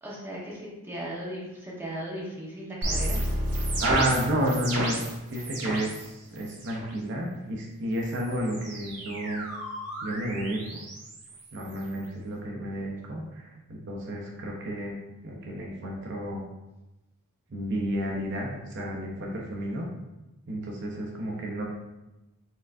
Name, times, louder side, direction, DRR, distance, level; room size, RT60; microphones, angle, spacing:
voice 1, 0.0-3.2, right 1 dB, 10° right, -6 dB, 0.9 m, -37 dB
sound 1, 2.8-6.0 6.3-6.9 7.9-12.1, right 1 dB, 85° right, 1.3 m, -32 dB
voice 2, 3.8-5.0 5.3-9.5 10.0-10.8 11.5-14.9 15.2-16.4 17.5-19.9 20.5-21.6, right 1 dB, 55° right, -1 dB, 0.6 m, -31 dB
4.4 x 3.5 x 2.5 m, 1.0 s
head